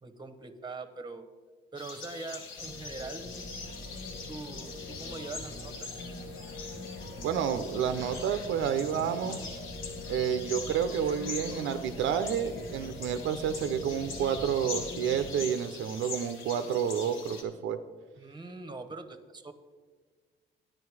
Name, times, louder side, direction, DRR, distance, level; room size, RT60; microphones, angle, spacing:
voice 1, 0.0-1.3 1.7-3.3 4.3-6.0 18.2-19.5, right 3 dB, 20° right, 8 dB, 1.0 m, -42 dB
sound 1, 1.8-17.4, left 4 dB, 80° left, 1.7 m, -43 dB
sound 2, 2.6-15.5, left 2 dB, 55° left, 1.5 m, -43 dB
voice 2, 7.2-9.4 10.1-17.8, right 8 dB, 80° right, 9 dB, 0.6 m, -30 dB
9.8 x 9.1 x 4.8 m, 1.4 s
cardioid pair, 90°, 20 cm